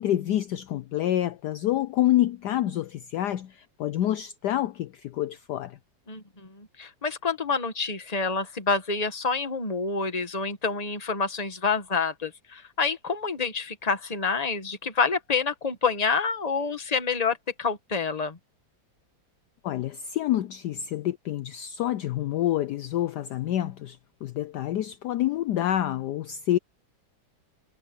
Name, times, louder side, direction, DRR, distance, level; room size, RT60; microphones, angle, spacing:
voice 1, 0.0-5.8 19.6-26.6, left 13 dB, 70° left, 1.1 m, -27 dB
voice 2, 6.1-18.4, left 4 dB, 20° left, 1.4 m, -28 dB
omnidirectional pair, 2.1 m